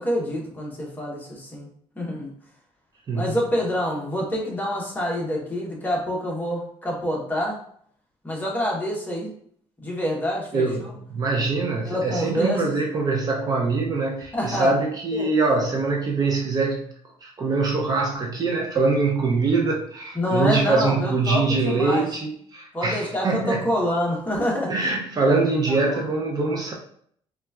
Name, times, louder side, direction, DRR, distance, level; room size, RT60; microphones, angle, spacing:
voice 1, 0.0-1.7 1.9-2.3 3.1-7.6 8.2-9.3 9.8-10.7 11.8-12.6 14.3-14.7 15.1-15.3 20.1-22.1 22.7-24.7 25.7-25.8, equal, 15° left, -3 dB, 0.9 m, -26 dB
voice 2, 10.5-16.8 17.2-23.7 24.7-26.7, right 3 dB, 35° right, 0 dB, 0.5 m, -23 dB
3.9 x 2.3 x 2.3 m, 0.63 s
cardioid pair, 125°, 11 cm